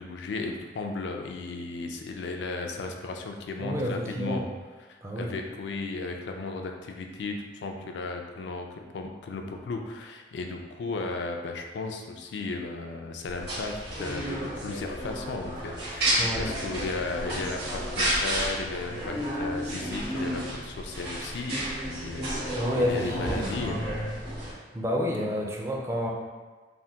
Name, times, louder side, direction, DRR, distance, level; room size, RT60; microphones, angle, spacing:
voice 1, 0.0-4.4 4.9-22.5 22.7-23.9 25.2-25.5, left 3 dB, 75° left, 3 dB, 0.3 m, -35 dB
voice 2, 3.6-4.5 5.0-5.3 16.2-16.5 22.5-23.5 24.4-26.1, equal, 15° right, -2 dB, 0.3 m, -30 dB
sound 1, 13.3-24.5, right 1 dB, 65° right, 1.2 m, -31 dB
3.3 x 2.1 x 2.7 m, 1.3 s
head